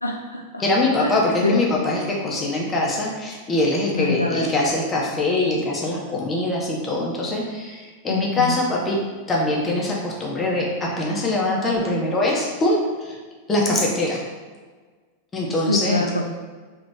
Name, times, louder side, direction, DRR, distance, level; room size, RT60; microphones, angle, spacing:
voice 1, 0.0-0.6 1.0-1.6 4.0-4.5 8.1-8.6 15.7-16.3, left 2 dB, 85° left, 1 dB, 0.4 m, -25 dB
voice 2, 0.6-9.0 9.3-13.2 13.5-14.2 15.3-16.1, left 2 dB, 20° left, -3 dB, 1.1 m, -23 dB
3.8 x 3.3 x 3.5 m, 1.4 s
figure-of-eight pair, 90°, 0 cm